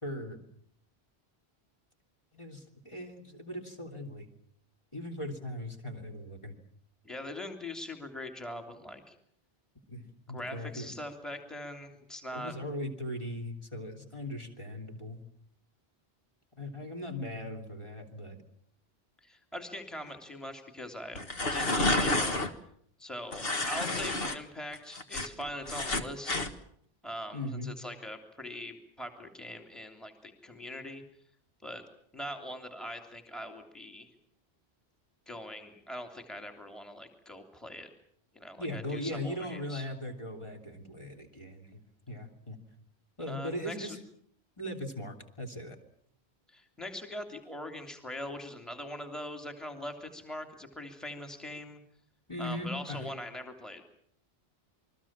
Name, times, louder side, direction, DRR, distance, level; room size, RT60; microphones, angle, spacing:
voice 1, 0.0-0.4 2.3-4.3 4.9-6.5 9.9-10.9 12.3-15.2 16.6-18.4 24.2-24.3 27.3-27.7 38.6-41.8 42.1-42.6 43.2-44.0 44.6-45.8 52.3-53.1, left 1 dB, 30° left, 3 dB, 3.3 m, -39 dB
voice 2, 7.0-9.1 10.3-12.5 19.2-21.2 21.5-22.4 23.0-26.4 27.0-31.0 31.6-31.8 32.1-34.1 35.3-37.9 38.3-39.9 43.2-44.0 46.5-51.8 52.4-53.9, left 1 dB, ahead, 4 dB, 3.0 m, -42 dB
sound 1, 21.1-22.5 23.3-24.4 24.7-26.5, left 2 dB, 65° left, 2.0 m, -30 dB
28.5 x 22.0 x 7.4 m, 0.65 s
omnidirectional pair, 1.1 m